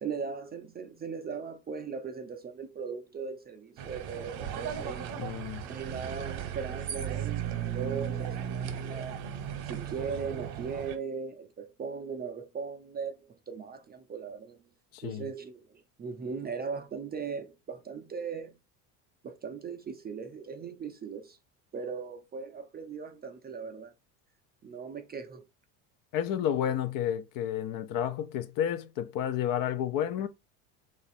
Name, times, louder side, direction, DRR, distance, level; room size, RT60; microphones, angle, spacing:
voice 1, 0.0-5.2 5.7-9.2 9.7-14.6 15.0-18.6 19.2-21.4 21.7-23.9 24.6-25.4, right 5 dB, 20° right, 0.4 m, -38 dB
sound 1, 3.8-11.0, right 9 dB, 60° right, 0.9 m, -36 dB
voice 2, 5.2-5.6 14.9-15.2 26.1-30.3, left 10 dB, 50° left, 0.5 m, -31 dB
2.9 x 2.5 x 4.1 m
supercardioid pair, 90°, 46 cm